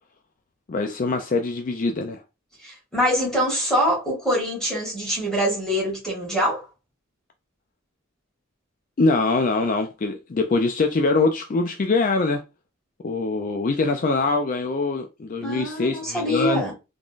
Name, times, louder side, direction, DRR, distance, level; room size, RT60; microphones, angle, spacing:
voice 1, 0.7-2.2 9.0-12.4 13.0-16.6, left 3 dB, 40° left, 0.4 m, -23 dB
voice 2, 2.6-6.6 15.4-16.7, equal, 5° left, 2.1 m, -24 dB
3.6 x 3.6 x 2.5 m
head